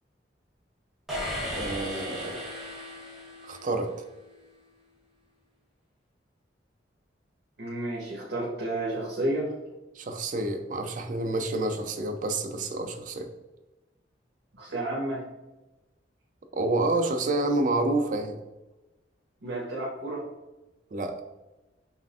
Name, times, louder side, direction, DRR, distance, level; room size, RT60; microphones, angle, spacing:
sound 1, 1.1-3.9, equal, ahead, 0.8 m, -36 dB
voice 1, 1.6-2.5 3.4-3.9 10.0-13.3 16.5-18.4 20.9-21.2, right 2 dB, 45° right, 6 dB, 0.4 m, -28 dB
voice 2, 7.6-9.5 14.6-15.2 19.4-20.2, right 1 dB, 70° right, -5 dB, 1.0 m, -31 dB
5.5 x 2.5 x 2.4 m, 1.0 s
head